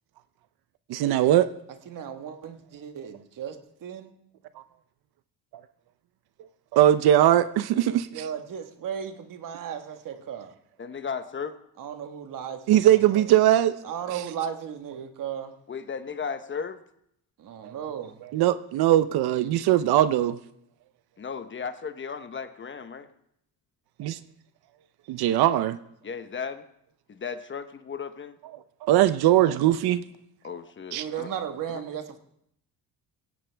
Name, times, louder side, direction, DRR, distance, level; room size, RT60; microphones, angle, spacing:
voice 1, 0.9-1.5 6.7-8.3 12.7-13.8 14.1-14.2 17.6-17.7 18.3-20.4 24.0-24.2 25.1-25.8 28.8-30.0 30.9-31.0, right 12 dB, 75° right, 13 dB, 0.7 m, -20 dB
voice 2, 1.9-4.1 8.1-10.5 11.8-12.8 13.1-13.2 13.8-15.5 17.4-18.2 30.9-32.2, right 8 dB, 55° right, 7 dB, 1.6 m, -35 dB
voice 3, 10.8-11.5 15.7-16.8 21.2-23.1 26.0-26.6 27.1-28.4 30.4-31.3 31.7-31.8, left 6 dB, 30° left, 10 dB, 1.0 m, -35 dB
17.0 x 16.5 x 3.4 m, 0.73 s
cardioid pair, 125°, 38 cm